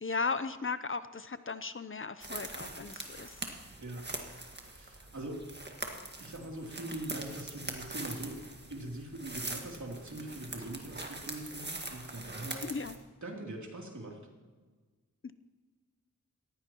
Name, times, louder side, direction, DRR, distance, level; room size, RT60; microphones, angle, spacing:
voice 1, 0.0-3.4 12.6-12.9 15.2-15.3, left 4 dB, 45° left, 12 dB, 0.6 m, -36 dB
sound 1, 2.2-12.9, right 2 dB, 35° right, 1.7 m, -43 dB
voice 2, 4.5-5.4 5.9-8.4 8.7-12.7 13.2-14.2, right 1 dB, 70° right, -1 dB, 3.1 m, -42 dB
18.5 x 15.5 x 3.0 m, 1.4 s
wide cardioid pair, 75°, 30 cm